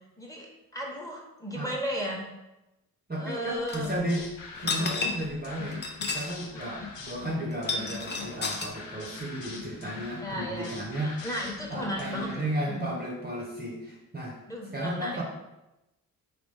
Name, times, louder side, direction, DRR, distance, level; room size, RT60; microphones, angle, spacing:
voice 1, 0.7-2.2 3.1-3.9 6.5-6.8 10.2-10.7 11.0-12.9 14.5-15.2, equal, 10° left, -1 dB, 1.1 m, -35 dB
voice 2, 3.1-4.3 4.6-11.3 11.7-14.4 14.7-15.2, right 1 dB, 20° right, -1 dB, 0.9 m, -34 dB
sound 1, 3.7-3.9 4.5-5.3 5.7-6.4 6.6-6.7 7.5-8.7, left 3 dB, 25° left, 0.6 m, -31 dB
sound 2, 3.8-12.5, left 5 dB, 80° left, 0.7 m, -43 dB
4.1 x 3.0 x 3.3 m, 0.97 s
hypercardioid pair, 40°, 43 cm